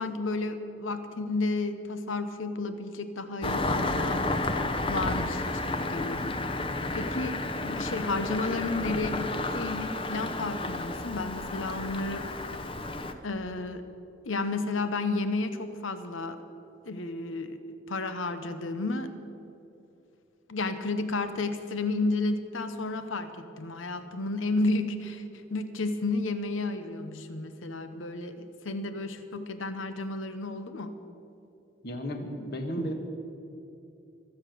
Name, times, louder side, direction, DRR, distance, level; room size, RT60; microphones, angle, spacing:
voice 1, 0.0-4.3 4.9-6.3 6.9-12.2 13.2-13.8 14.3-16.4 16.9-17.6 17.9-19.1 20.5-25.2 25.5-30.9, left 2 dB, 90° left, 10 dB, 1.0 m, -32 dB
Engine starting, 3.4-13.1, left 2 dB, 25° left, 0.8 m, -31 dB
voice 2, 31.8-32.9, equal, 55° left, 4 dB, 1.8 m, -33 dB
24.5 x 8.2 x 6.8 m, 2.8 s
head